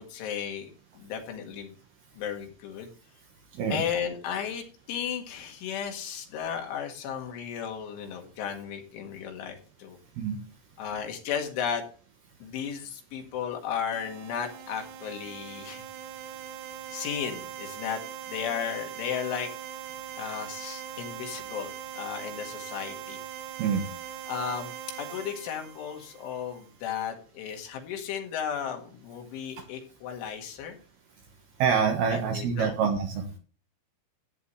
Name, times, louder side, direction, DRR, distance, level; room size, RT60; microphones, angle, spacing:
voice 1, 0.0-1.7 2.2-2.9 3.7-10.0 10.8-11.8 12.4-15.8 16.9-18.0 18.3-19.5 20.2-23.2 24.3-24.7 25.0-30.8 32.1-32.8, left 8 dB, 70° left, 3 dB, 4.2 m, -34 dB
sound 1, 13.9-26.6, right 10 dB, 80° right, 3.5 m, -41 dB
voice 2, 31.6-33.4, right 6 dB, 65° right, 3 dB, 2.7 m, -26 dB
14.5 x 9.3 x 3.2 m, 0.37 s
omnidirectional pair, 5.8 m